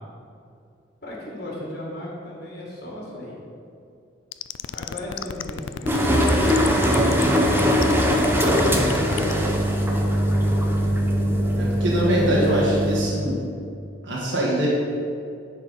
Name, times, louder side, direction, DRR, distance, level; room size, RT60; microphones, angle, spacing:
voice 1, 1.0-3.4 4.7-9.0, left 1 dB, 55° left, -3 dB, 2.2 m, -36 dB
sound 1, 4.3-9.4, left 9 dB, 80° left, 0.3 m, -32 dB
sound 2, 5.9-13.1, equal, 10° right, 0.8 m, -21 dB
voice 2, 11.5-13.4 14.0-14.7, right 1 dB, 70° right, -6 dB, 1.7 m, -23 dB
9.9 x 4.6 x 5.4 m, 2.5 s
head